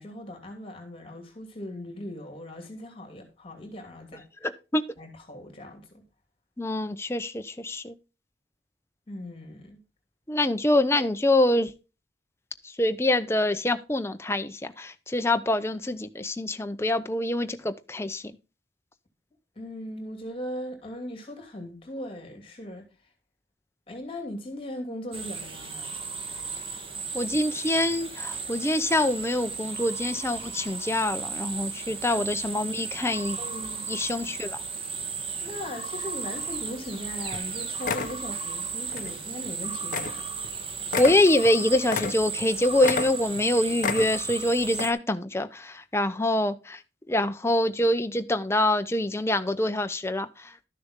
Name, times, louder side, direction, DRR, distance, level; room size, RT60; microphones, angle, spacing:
voice 1, 0.0-4.3 5.0-6.0 9.1-9.8 19.6-22.9 23.9-26.0 32.1-32.2 33.4-33.9 35.4-40.3, left 1 dB, 30° left, 2.7 m, -39 dB
voice 2, 4.4-4.8 6.6-8.0 10.3-11.7 12.6-18.3 27.1-33.4 33.9-34.6 41.0-46.8 47.1-50.6, left 1 dB, 15° left, 0.7 m, -25 dB
sound 1, 25.1-44.9, right 5 dB, 30° right, 1.4 m, -35 dB
sound 2, 36.9-37.0 37.3-37.5 37.8-38.2 38.9-39.1 39.4-39.5 39.9-40.2 40.4-40.5 40.9-42.5 42.8-43.5 43.8-44.4 44.7-44.9, left 5 dB, 45° left, 0.8 m, -31 dB
12.5 x 6.8 x 3.7 m
head